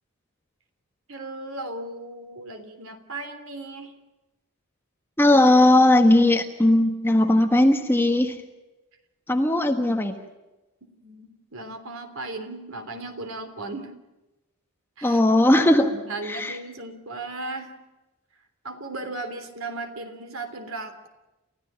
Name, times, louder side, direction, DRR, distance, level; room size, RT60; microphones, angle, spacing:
voice 1, 1.1-3.9 10.9-13.9 15.0-15.2 15.6-17.8 18.6-21.1, right 2 dB, 65° right, 7 dB, 3.2 m, -36 dB
voice 2, 5.2-8.4 9.3-10.1 15.0-15.9 16.2-16.6, left 1 dB, 10° left, 5 dB, 1.4 m, -18 dB
29.5 x 15.0 x 9.0 m, 1.1 s
head